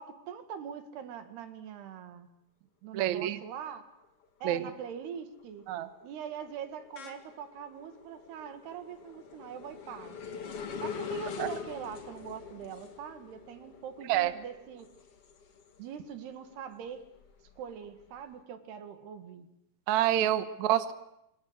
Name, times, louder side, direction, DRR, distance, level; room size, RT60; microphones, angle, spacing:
voice 1, 0.0-2.3 2.8-3.8 4.4-5.7 6.0-10.4 10.8-14.9 15.8-17.1 17.6-19.5, right 8 dB, 85° right, 9 dB, 4.0 m, -43 dB
voice 2, 2.9-3.4 4.4-4.7 5.7-5.9 11.4-11.5 14.1-14.3 19.9-20.9, right 12 dB, 60° right, 11 dB, 2.1 m, -27 dB
sound 1, 4.0-4.4 4.8-16.1 16.5-18.2, left 6 dB, 45° left, 2.3 m, -44 dB
27.0 x 24.5 x 8.0 m, 0.81 s
omnidirectional pair, 4.6 m